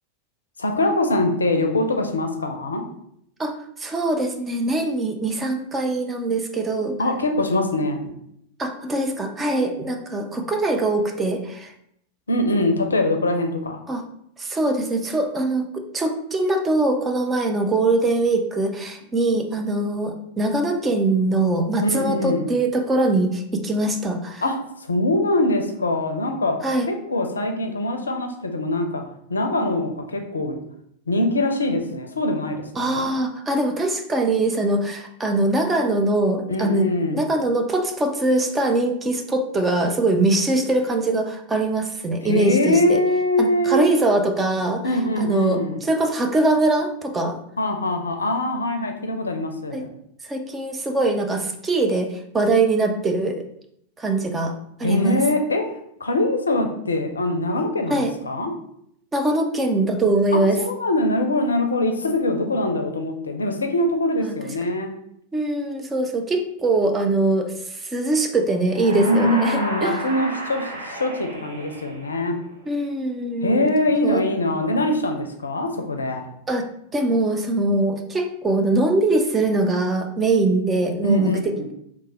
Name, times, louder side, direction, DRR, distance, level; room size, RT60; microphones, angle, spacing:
voice 1, 0.6-2.8 7.0-8.1 12.3-13.8 21.8-22.5 24.4-26.6 26.9-29.0 29.3-30.6 31.1-33.0 36.5-37.3 42.3-43.9 44.8-45.8 47.6-49.9 54.8-55.6 56.0-58.5 60.3-64.9 68.9-72.4 73.4-76.2 81.0-81.7, left 1 dB, 75° left, 5 dB, 0.4 m, -23 dB
voice 2, 3.4-7.0 8.6-11.7 13.9-14.0 14.4-24.4 26.6-26.9 32.8-43.0 43.4-44.8 45.2-47.4 49.7-49.9 50.2-53.4 54.0-55.2 57.9-58.1 59.1-60.6 64.2-64.3 65.3-70.0 72.7-73.7 74.0-74.2 76.5-76.7 76.9-81.3, right 2 dB, 15° right, 4 dB, 0.4 m, -22 dB
sound 1, 68.6-72.5, equal, 70° right, 0.8 m, -32 dB
3.2 x 2.1 x 4.2 m, 0.73 s
figure-of-eight pair, 90°, 0 cm